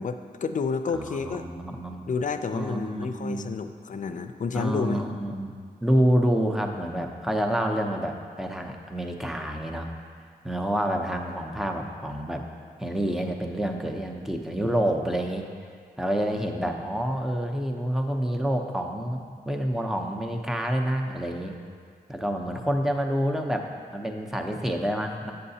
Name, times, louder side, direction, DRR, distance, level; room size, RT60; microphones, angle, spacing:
voice 1, 0.0-1.4 2.1-5.0, left 5 dB, 55° left, 9 dB, 0.4 m, -30 dB
voice 2, 0.9-2.0 2.5-3.6 4.5-9.9 10.4-12.4 12.8-15.5 16.0-21.6 22.1-25.3, equal, ahead, 2 dB, 0.7 m, -28 dB
7.8 x 7.5 x 2.8 m, 2.1 s
cardioid pair, 60°, 16 cm